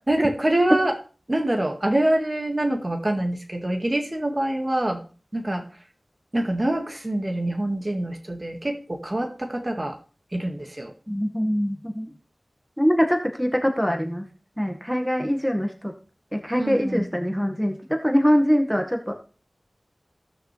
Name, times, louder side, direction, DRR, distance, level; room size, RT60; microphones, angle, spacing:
voice 1, 0.1-0.9 1.3-5.0 5.3-5.6 6.3-10.0 10.3-10.9 16.6-17.1, right 1 dB, 35° right, 3 dB, 2.0 m, -25 dB
voice 2, 11.1-12.1 12.8-14.2 14.6-15.9 16.3-19.1, equal, ahead, 3 dB, 1.8 m, -23 dB
17.5 x 6.3 x 3.4 m, 0.37 s
wide cardioid pair, 50°, 0 cm